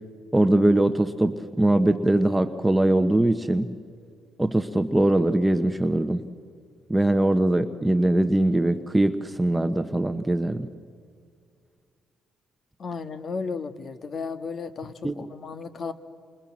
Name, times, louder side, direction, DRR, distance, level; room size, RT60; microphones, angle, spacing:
voice 1, 0.3-3.7 4.4-6.2 6.9-10.7 15.0-15.1, right 1 dB, 10° right, 7 dB, 1.1 m, -22 dB
voice 2, 12.8-15.9, left 5 dB, 50° left, 10 dB, 1.8 m, -34 dB
29.0 x 27.0 x 7.4 m, 2.2 s
cardioid pair, 90°, 0 cm